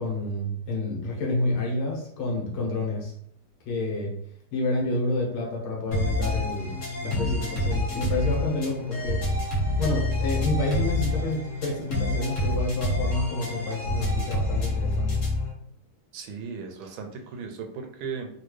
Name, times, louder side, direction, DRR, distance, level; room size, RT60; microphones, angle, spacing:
voice 1, 0.0-3.1 3.7-4.1 4.5-9.3 9.8-15.2, left 2 dB, 80° left, -2 dB, 1.9 m, -29 dB
sound 1, 5.9-15.5, left 1 dB, 45° left, 1.1 m, -27 dB
voice 2, 16.1-18.3, right 5 dB, 75° right, 4 dB, 1.2 m, -36 dB
4.2 x 2.3 x 3.1 m, 0.67 s
omnidirectional pair, 2.3 m